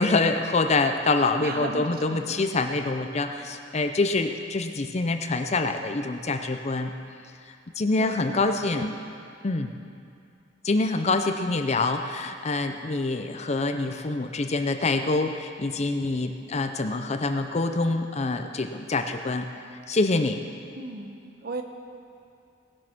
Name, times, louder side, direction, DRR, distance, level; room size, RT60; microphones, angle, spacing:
voice 1, 0.0-6.9 7.8-9.0 9.4-9.7 10.6-20.4, left 3 dB, 35° left, 6 dB, 0.6 m, -26 dB
voice 2, 1.4-2.4 8.0-8.4 8.7-9.0 20.7-21.6, right 2 dB, 55° right, 5 dB, 1.0 m, -36 dB
18.0 x 6.4 x 6.0 m, 2.5 s
head